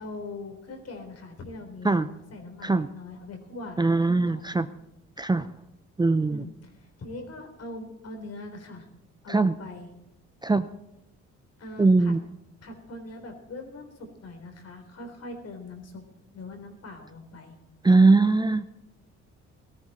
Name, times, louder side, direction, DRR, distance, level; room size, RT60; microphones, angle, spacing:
voice 1, 0.0-3.8 4.1-4.7 6.3-8.9 9.2-9.9 11.6-12.1 12.6-16.0 16.3-17.5, left 2 dB, 55° left, 5 dB, 3.8 m, -42 dB
voice 2, 3.8-4.7 5.2-5.5 6.0-6.4 9.3-9.5 10.4-10.7 11.8-12.2 17.8-18.6, right 3 dB, 15° right, 12 dB, 0.5 m, -21 dB
17.5 x 13.5 x 4.3 m, 0.90 s
cardioid pair, 90°, 30 cm